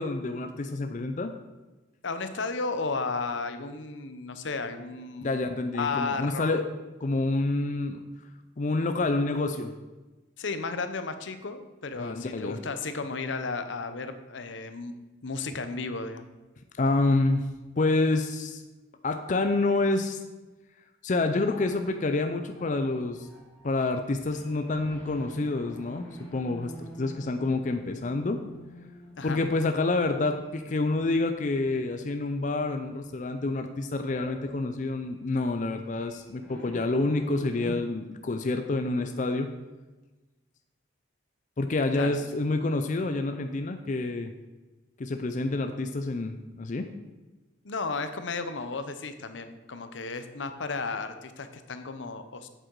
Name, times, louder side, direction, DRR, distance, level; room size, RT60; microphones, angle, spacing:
voice 1, 0.0-1.3 5.2-6.7 7.0-8.0 8.6-9.7 12.0-12.6 16.8-17.5 17.8-18.6 19.0-20.2 21.0-23.3 23.6-28.4 29.2-39.5 41.6-44.3 45.0-46.9, left 2 dB, 40° left, 7 dB, 0.5 m, -28 dB
voice 2, 2.0-6.6 10.4-14.9 15.2-16.3 29.2-29.4 41.9-42.2 47.6-52.5, left 4 dB, 80° left, 9 dB, 0.8 m, -34 dB
sound 1, 21.2-31.8 32.3-32.4 33.0-33.4 33.6-37.7, right 1 dB, 10° left, 2.8 m, -49 dB
8.0 x 7.7 x 4.6 m, 1.2 s
head